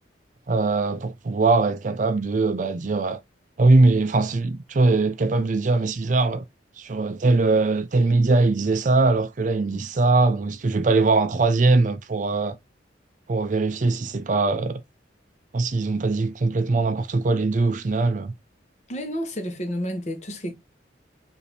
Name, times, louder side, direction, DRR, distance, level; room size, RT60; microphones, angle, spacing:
voice 1, 0.5-3.2 3.6-6.4 6.8-12.6 13.3-14.8 15.5-18.3, right 3 dB, 45° right, 0.4 m, -21 dB
voice 2, 18.9-20.5, equal, 40° left, 1.0 m, -30 dB
5.1 x 2.7 x 3.3 m
head